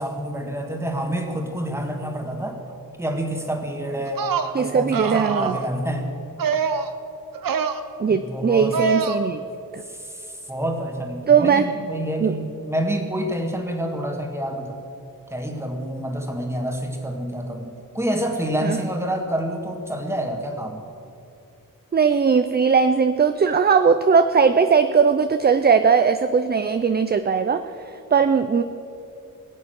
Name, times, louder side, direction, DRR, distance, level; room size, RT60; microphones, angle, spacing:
voice 1, 0.0-2.6 3.0-4.3 4.6-6.1 8.1-9.0 9.8-14.8 15.3-20.8, equal, 5° right, 3 dB, 1.7 m, -28 dB
sound 1, 4.1-4.5 4.9-5.7 6.4-6.9 7.3-7.8 8.7-9.2, right 6 dB, 75° right, 0.9 m, -24 dB
voice 2, 4.5-5.6 8.0-9.4 9.7-9.8 11.3-11.7 12.2-12.3 18.6-18.8 21.9-27.6 28.1-28.6, right 6 dB, 30° right, 10 dB, 0.4 m, -19 dB
21.5 x 8.5 x 6.4 m, 2.6 s
wide cardioid pair, 150°, 34 cm